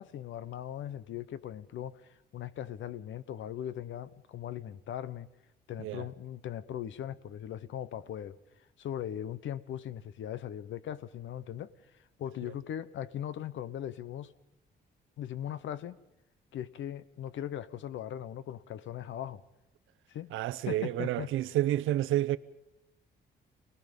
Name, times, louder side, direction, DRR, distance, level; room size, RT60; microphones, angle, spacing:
voice 1, 0.0-5.3 5.7-8.4 8.8-11.7 12.2-14.3 15.2-16.0 16.5-19.4 20.1-20.3 20.7-21.3, left 10 dB, 75° left, 1.0 m, -39 dB
voice 2, 20.3-22.4, right 14 dB, 90° right, 0.8 m, -30 dB
29.0 x 19.0 x 5.4 m
cardioid pair, 90°, 20 cm